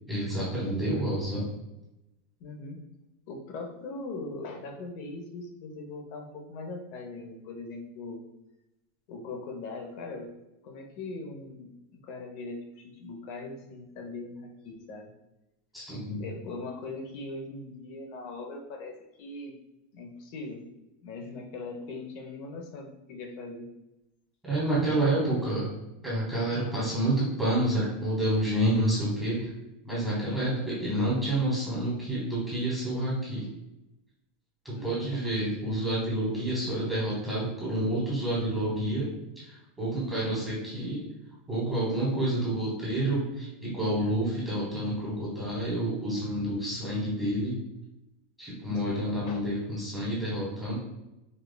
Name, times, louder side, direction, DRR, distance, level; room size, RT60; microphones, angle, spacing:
voice 1, 0.1-1.5 15.7-16.2 24.4-25.7 26.0-29.5 29.8-33.5 34.6-39.1 39.4-41.0 41.5-47.6 48.4-50.7, right 1 dB, ahead, -8 dB, 1.1 m, -29 dB
voice 2, 2.4-2.8 3.3-8.2 9.1-10.3 10.6-15.1 16.1-19.5 19.9-20.7 21.0-23.7 34.7-35.3 48.8-49.4, left 3 dB, 45° left, 3 dB, 0.6 m, -40 dB
5.0 x 2.3 x 2.2 m, 0.92 s
supercardioid pair, 165°, 0 cm